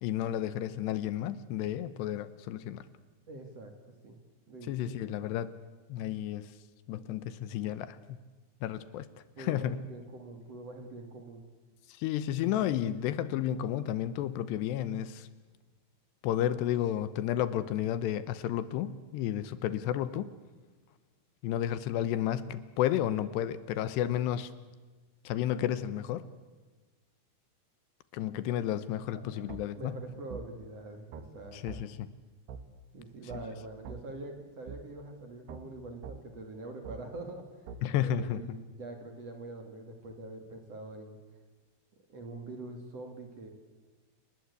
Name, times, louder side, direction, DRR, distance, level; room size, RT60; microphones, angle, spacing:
voice 1, 0.0-2.9 4.7-5.5 5.9-6.5 6.9-8.0 8.6-9.1 9.4-9.8 12.0-15.3 16.2-20.3 21.4-24.5 25.3-26.3 28.1-29.9 31.5-32.1 37.8-38.6, left 11 dB, 80° left, 14 dB, 3.0 m, -32 dB
voice 2, 3.3-3.7 4.0-4.2 4.5-4.9 9.4-11.4 29.1-29.4 29.8-31.9 32.9-41.2 42.1-43.5, right 2 dB, 45° right, 5 dB, 2.7 m, -44 dB
sound 1, 29.5-29.6 30.3-30.4 31.1-31.3 31.7-31.8 32.5-32.6 33.3-33.4 33.8-34.0 34.7-34.8 35.5-35.6 36.0-36.2 36.8-37.0 37.7-37.8, right 6 dB, 70° right, 3.5 m, -42 dB
29.5 x 19.5 x 8.3 m, 1.3 s
omnidirectional pair, 5.0 m